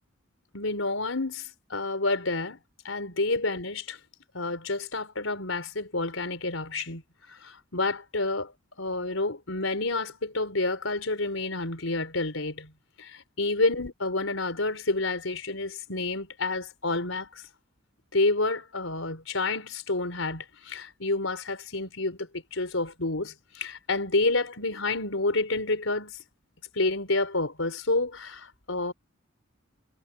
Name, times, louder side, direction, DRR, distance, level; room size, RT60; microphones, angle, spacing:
voice 1, 0.5-2.6 2.8-4.0 4.3-7.0 7.4-8.5 8.8-12.7 13.0-17.3 18.1-26.2 26.7-28.9, left 2 dB, 85° left, 4.5 m, -29 dB
head